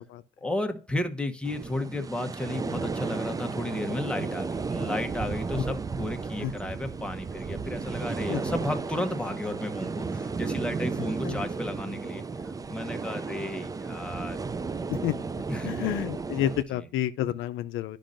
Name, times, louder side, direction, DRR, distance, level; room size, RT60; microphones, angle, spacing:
voice 1, 0.4-14.4 15.5-15.8 16.7-16.8, left 1 dB, 5° left, 0.9 m, -33 dB
sound 1, 1.4-16.6, right 4 dB, 20° right, 0.3 m, -33 dB
voice 2, 15.6-18.0, left 12 dB, 80° left, 0.5 m, -30 dB
10.5 x 5.3 x 2.5 m
cardioid pair, 90°, 20 cm